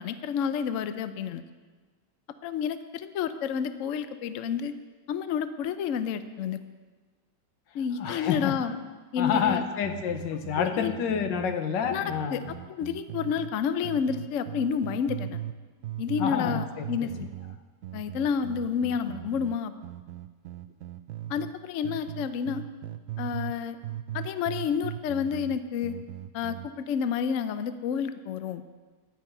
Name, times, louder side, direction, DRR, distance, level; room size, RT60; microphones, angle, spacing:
voice 1, 0.0-1.4 2.4-4.7 5.1-6.6 7.7-8.7 9.1-9.6 10.5-10.9 11.9-12.4 12.7-15.4 16.0-17.3 17.9-19.7 21.3-22.6 23.2-23.8 24.1-26.0 26.3-28.6, left 7 dB, 65° left, 11 dB, 0.8 m, -30 dB
voice 2, 8.0-8.5 9.2-12.5 16.2-17.1, left 7 dB, 85° left, 8 dB, 1.6 m, -28 dB
sound 1, 9.4-13.5 13.8-15.6 15.8-21.5 21.8-23.6 23.8-26.7, right 13 dB, 80° right, 0.7 m, -39 dB
12.0 x 5.7 x 8.8 m, 1.4 s
omnidirectional pair, 1.9 m